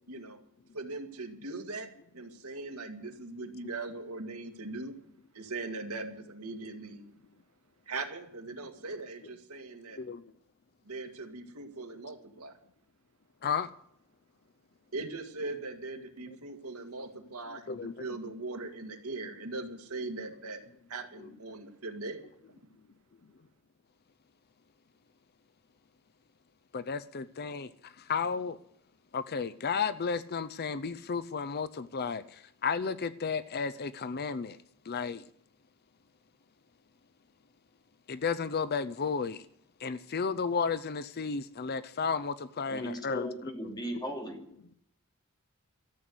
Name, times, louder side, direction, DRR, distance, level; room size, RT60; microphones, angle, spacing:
voice 1, 0.1-0.4 0.7-1.9 2.1-4.9 5.3-7.0 7.9-10.0 10.9-12.6 14.9-20.6 20.9-22.2, right 3 dB, 85° right, 1.9 m, -40 dB
voice 2, 26.7-28.6 29.1-34.6 34.9-35.2 38.1-39.5 39.8-43.3, left 5 dB, 45° left, 0.6 m, -33 dB
voice 3, 42.7-44.4, equal, 20° left, 2.9 m, -38 dB
14.0 x 7.8 x 9.5 m
head